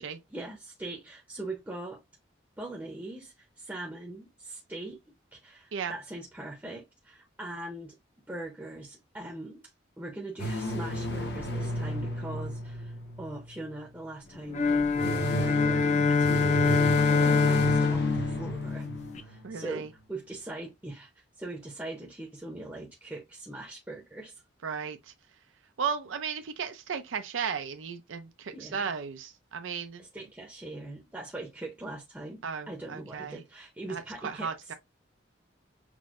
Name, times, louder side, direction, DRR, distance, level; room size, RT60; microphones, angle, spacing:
voice 1, 0.3-2.0 2.6-5.0 5.3-8.0 8.3-9.6 10.0-18.9 19.2-24.4 28.5-28.9 30.0-34.7, right 2 dB, 10° right, 0.6 m, -41 dB
sound 1, 10.4-13.8 14.7-19.5, right 1 dB, 55° left, 0.8 m, -33 dB
sound 2, 14.5-19.2, left 4 dB, 35° left, 0.4 m, -25 dB
voice 2, 19.4-19.9 24.6-25.1 25.8-30.0 32.4-33.4 33.9-34.7, right 6 dB, 85° right, 0.5 m, -35 dB
6.0 x 2.1 x 2.4 m
head